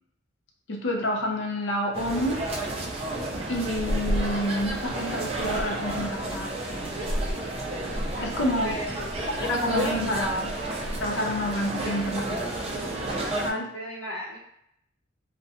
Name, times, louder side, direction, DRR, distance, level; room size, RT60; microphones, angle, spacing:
voice 1, 0.7-2.5 3.5-6.6 8.2-8.7 9.4-10.6 11.0-12.6 13.4-13.7, left 1 dB, 65° left, 1 dB, 0.5 m, -28 dB
sound 1, 1.9-13.5, right 1 dB, 30° right, 0.3 m, -30 dB
voice 2, 13.3-14.4, equal, 85° left, -4 dB, 0.8 m, -36 dB
2.6 x 2.1 x 2.5 m, 0.74 s
head